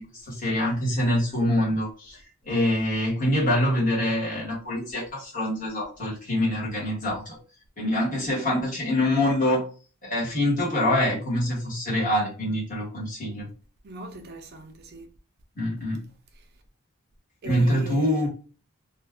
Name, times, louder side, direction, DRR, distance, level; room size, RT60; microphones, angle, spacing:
voice 1, 0.0-2.2 2.4-7.4 7.8-9.6 10.0-13.5 15.6-16.0 17.4-18.3, left 1 dB, 35° left, 1.3 m, -25 dB
voice 2, 13.8-15.1 17.4-18.3, right 3 dB, 45° right, 0.5 m, -39 dB
2.4 x 2.3 x 3.5 m
head